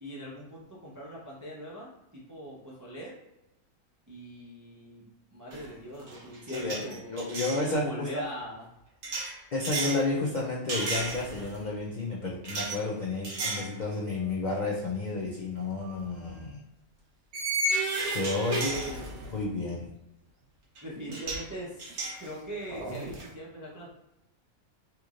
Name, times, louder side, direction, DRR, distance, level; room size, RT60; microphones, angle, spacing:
voice 1, 0.0-3.2 4.1-5.1 5.3-7.2 7.5-8.6 18.5-19.0 20.8-21.9 22.2-24.0, equal, 30° right, -5 dB, 0.3 m, -41 dB
sound 1, 5.5-5.7 6.0-7.6 9.0-10.0 10.7-11.6 12.4-12.8 13.2-13.7 14.2-14.3 15.8-16.0 17.3-19.4 20.8-20.9 21.1-21.5 21.8-23.3, right 2 dB, 90° right, 1.4 m, -33 dB
voice 2, 6.5-6.8 7.1-8.2 9.5-16.6 18.1-18.8 19.3-19.9, left 2 dB, 80° left, -4 dB, 0.4 m, -31 dB
3.5 x 3.0 x 2.4 m, 0.90 s
omnidirectional pair, 1.5 m